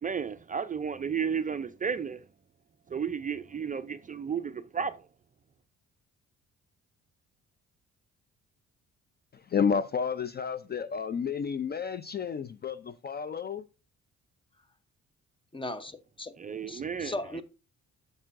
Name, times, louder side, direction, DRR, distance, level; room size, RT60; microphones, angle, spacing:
voice 1, 0.0-2.3 2.9-5.1 16.4-17.4, right 6 dB, 25° right, 0.4 m, -33 dB
voice 2, 9.3-13.7, left 6 dB, 35° left, 0.4 m, -31 dB
voice 3, 15.5-16.3 16.7-17.4, left 1 dB, 15° left, 0.8 m, -37 dB
9.0 x 6.7 x 2.5 m
cardioid pair, 90°, 30 cm